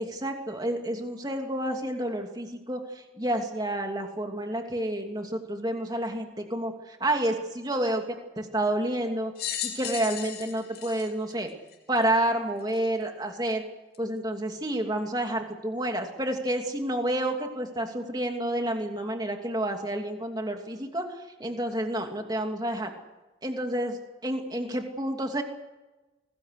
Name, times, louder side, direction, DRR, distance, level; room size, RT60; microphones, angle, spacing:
voice 1, 0.0-9.3 9.6-11.5 11.9-13.6 14.0-22.9 23.4-25.4, right 1 dB, 20° right, 3 dB, 2.8 m, -29 dB
sound 1, 9.3-12.0 12.7-12.8 13.9-14.0, left 10 dB, 55° left, 3.6 m, -35 dB
25.0 x 20.0 x 6.7 m, 1.1 s
head